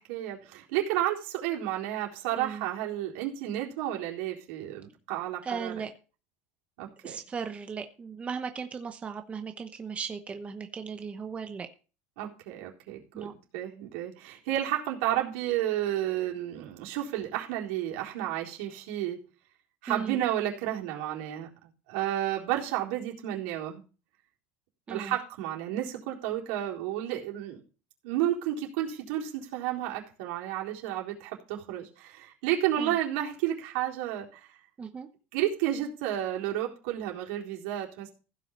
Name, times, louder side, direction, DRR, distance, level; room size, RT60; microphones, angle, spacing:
voice 1, 0.0-5.7 6.8-7.2 12.2-13.3 13.5-19.2 19.8-21.5 21.9-23.8 24.9-27.6 28.0-34.5 35.3-38.1, right 12 dB, 75° right, -1 dB, 4.1 m, -31 dB
voice 2, 2.3-2.7 5.4-5.9 7.0-11.7 13.1-13.3 19.9-20.2 24.9-25.1 32.8-33.0 34.8-35.1, right 6 dB, 20° right, 7 dB, 0.9 m, -37 dB
15.5 x 6.2 x 5.5 m, 0.35 s
supercardioid pair, 145°, 7 cm